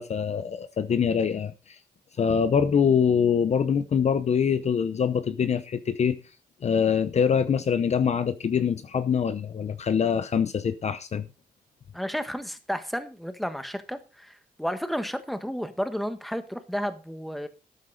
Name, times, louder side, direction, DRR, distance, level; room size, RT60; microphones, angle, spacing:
voice 1, 0.0-1.5 2.2-6.2 6.6-11.3, left 7 dB, 40° left, 0.8 m, -24 dB
voice 2, 11.9-17.5, equal, ahead, 1.4 m, -32 dB
13.0 x 9.6 x 4.0 m
cardioid pair, 130°, 17 cm